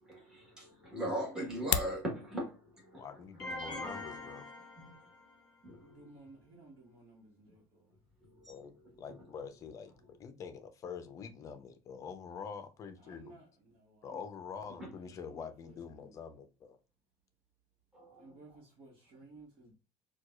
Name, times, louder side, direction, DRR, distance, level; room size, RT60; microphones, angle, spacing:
voice 1, 0.0-3.1 4.8-4.9 5.6-6.0 8.3-8.5 14.8-14.9 17.9-18.3, right 1 dB, 5° right, 1.3 m, -39 dB
sound 1, 1.5-2.0, left 11 dB, 85° left, 0.4 m, -32 dB
voice 2, 2.9-4.5 8.5-8.7 9.0-13.3 14.0-16.8, left 6 dB, 30° left, 0.5 m, -46 dB
sound 2, 3.4-5.5, left 1 dB, 10° left, 1.8 m, -43 dB
voice 3, 5.8-7.9 13.0-14.2 14.7-16.2 18.2-19.7, right 2 dB, 55° right, 1.2 m, -57 dB
4.5 x 2.3 x 2.3 m
cardioid pair, 165°, 11 cm